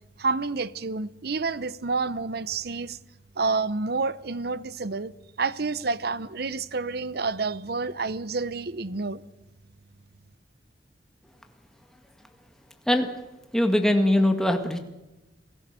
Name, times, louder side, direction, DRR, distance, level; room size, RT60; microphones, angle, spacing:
voice 1, 0.2-3.0 3.4-5.1 5.4-9.2, right 4 dB, 60° right, 0.8 m, -29 dB
voice 2, 13.5-14.8, left 1 dB, 5° left, 1.9 m, -21 dB
27.5 x 16.5 x 6.9 m
head